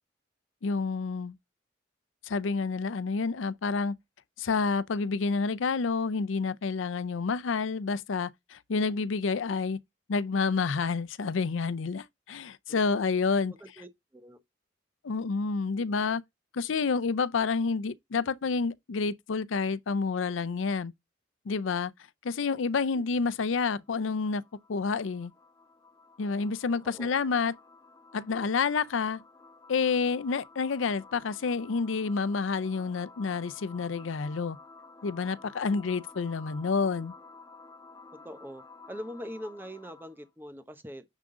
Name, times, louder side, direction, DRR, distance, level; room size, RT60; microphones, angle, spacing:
voice 1, 0.6-1.3 2.2-3.9 4.4-9.8 10.1-13.5 15.0-16.2 16.5-20.9 21.5-21.9 22.2-24.4 24.7-25.3 26.2-27.5 28.1-29.2 29.7-34.6 35.0-37.1, left 4 dB, 85° left, 0.5 m, -29 dB
voice 2, 13.6-14.4 22.9-23.0 26.8-27.2 38.2-41.0, equal, 10° right, 0.9 m, -43 dB
sound 1, 23.8-40.3, left 3 dB, 20° left, 0.6 m, -53 dB
9.7 x 3.7 x 3.7 m
head